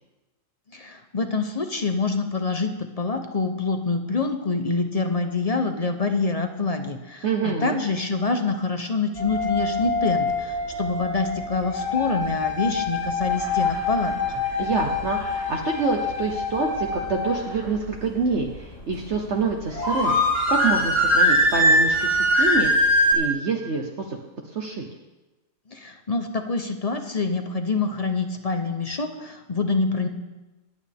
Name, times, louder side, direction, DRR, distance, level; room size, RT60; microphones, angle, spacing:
voice 1, 0.7-14.1 25.7-30.1, left 3 dB, 35° left, 6 dB, 0.8 m, -26 dB
voice 2, 7.2-7.8 14.6-20.2 20.5-22.7 23.1-24.2 24.5-24.8, right 4 dB, 60° right, 1 dB, 1.3 m, -26 dB
sound 1, 9.1-23.1, left 1 dB, 65° left, 5.9 m, -23 dB
23.0 x 9.0 x 3.5 m, 1.1 s
omnidirectional pair, 1.4 m